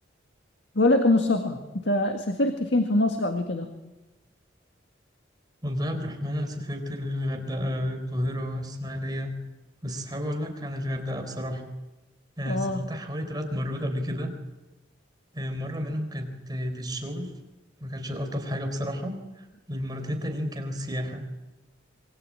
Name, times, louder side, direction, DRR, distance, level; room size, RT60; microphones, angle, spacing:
voice 1, 0.8-3.7 12.5-12.8, left 2 dB, 65° left, 6 dB, 1.9 m, -24 dB
voice 2, 5.6-9.3 9.8-11.6 12.4-14.3 15.3-17.4 17.8-21.2, equal, 20° right, 4 dB, 4.1 m, -31 dB
26.5 x 22.5 x 8.8 m, 1.1 s
head